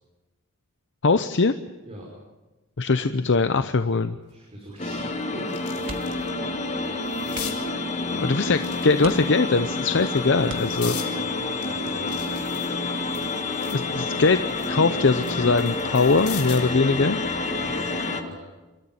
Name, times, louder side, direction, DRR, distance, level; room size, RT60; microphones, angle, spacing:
voice 1, 1.0-1.5 2.8-4.2 8.1-10.9 13.7-14.4 14.7-17.2, left 3 dB, 55° left, 10 dB, 0.8 m, -21 dB
sound 1, 4.3-4.4 4.9-6.3 6.6-7.6 8.5-9.4 10.0-11.1 11.6-13.9 14.3-16.7 18.1-18.3, left 9 dB, 85° left, 4.1 m, -40 dB
voice 2, 4.3-5.4 10.8-12.2 17.4-18.4, equal, 25° right, -3 dB, 5.7 m, -41 dB
sound 2, 4.8-18.2, left 3 dB, 30° left, 1.8 m, -28 dB
sound 3, 5.8-6.3 6.6-6.8 7.3-7.8 8.4-8.5 9.0-9.7 10.4-11.2 12.8-13.1 13.5-13.6, right 3 dB, 60° right, 2.0 m, -41 dB
29.0 x 14.0 x 9.4 m, 1.1 s
head